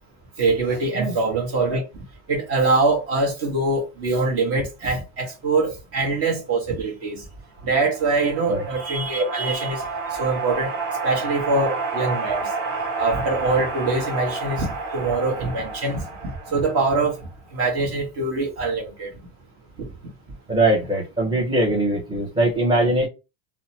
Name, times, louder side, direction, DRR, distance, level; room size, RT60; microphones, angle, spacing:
voice 1, 0.4-1.8 2.3-7.3 7.6-9.8 10.2-10.7 11.0-12.5 13.0-19.1, right 3 dB, 35° right, 1.2 m, -23 dB
sound 1, 7.7-17.3, right 4 dB, 60° right, 1.2 m, -30 dB
voice 2, 20.5-23.1, right 1 dB, 10° right, 0.8 m, -21 dB
2.8 x 2.1 x 2.7 m
supercardioid pair, 135°, 38 cm